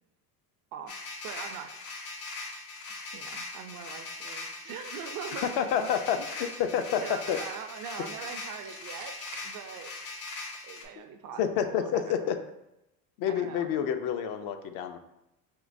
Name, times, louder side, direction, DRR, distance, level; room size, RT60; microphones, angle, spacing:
voice 1, 0.7-1.7 3.1-5.9 6.2-6.3 7.0-9.2 9.4-9.9 10.6-12.3 13.3-13.7, right 7 dB, 45° right, 7 dB, 0.4 m, -42 dB
sound 1, 0.9-10.8, left 3 dB, 85° left, 0.9 m, -40 dB
sound 2, 5.3-5.8 8.6-10.2, right 5 dB, 75° right, 0.8 m, -51 dB
voice 2, 5.4-7.4 11.4-12.4 13.2-15.0, left 8 dB, 55° left, 7 dB, 0.5 m, -29 dB
3.6 x 2.8 x 2.5 m, 0.89 s
hypercardioid pair, 80°, 47 cm